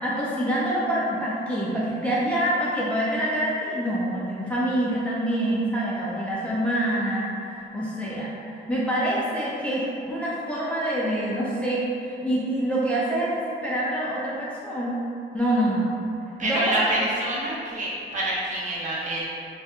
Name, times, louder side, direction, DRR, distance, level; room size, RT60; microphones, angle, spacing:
voice 1, 0.0-15.0 15.3-15.9 16.4-16.9, right 1 dB, 5° left, -7 dB, 0.3 m, -26 dB
voice 2, 16.4-19.3, right 1 dB, 40° right, -7 dB, 0.7 m, -27 dB
2.8 x 2.3 x 2.2 m, 2.6 s
cardioid pair, 90°, 20 cm